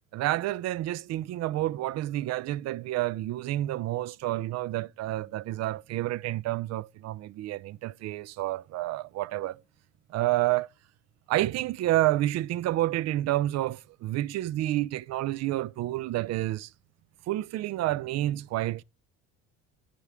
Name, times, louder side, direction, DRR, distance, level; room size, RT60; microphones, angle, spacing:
voice 1, 0.1-9.6 10.1-10.7 11.3-16.7 17.3-18.8, right 15 dB, 45° right, 0.4 m, -29 dB
7.9 x 6.1 x 3.5 m
hypercardioid pair, 70°, 37 cm